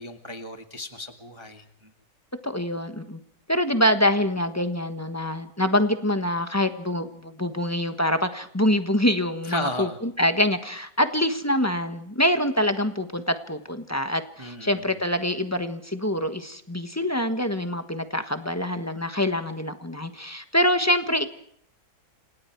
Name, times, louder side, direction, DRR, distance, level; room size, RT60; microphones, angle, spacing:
voice 1, 0.0-1.9 9.4-10.0 14.4-14.8, left 1 dB, 15° right, 5 dB, 1.5 m, -35 dB
voice 2, 2.4-3.2 3.5-21.3, left 1 dB, 10° left, 8 dB, 1.1 m, -25 dB
29.5 x 27.0 x 4.6 m, 0.67 s
omnidirectional pair, 2.1 m